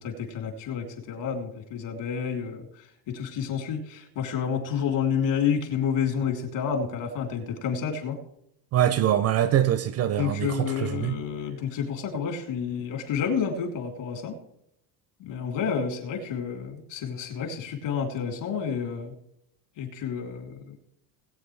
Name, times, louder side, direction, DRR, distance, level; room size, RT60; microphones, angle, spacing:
voice 1, 0.0-8.2 10.2-14.4 15.2-19.1 19.8-20.7, left 7 dB, 60° left, 3.4 m, -30 dB
voice 2, 8.7-11.1, right 11 dB, 35° right, 0.4 m, -24 dB
20.0 x 8.7 x 3.2 m
supercardioid pair, 130°, 49 cm